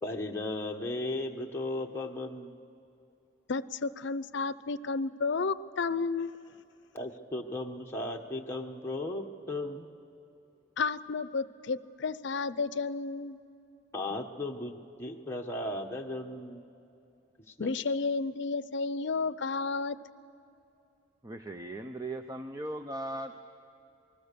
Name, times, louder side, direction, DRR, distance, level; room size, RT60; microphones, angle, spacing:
voice 1, 0.0-2.6 6.9-9.9 13.9-16.6 17.5-17.7, left 2 dB, 15° left, 0 dB, 1.2 m, -36 dB
voice 2, 3.5-6.3 10.8-13.4 17.6-20.0, left 4 dB, 65° left, 16 dB, 0.6 m, -32 dB
voice 3, 21.2-23.3, right 1 dB, 20° right, 6 dB, 0.6 m, -38 dB
27.0 x 20.0 x 6.9 m, 2.8 s
head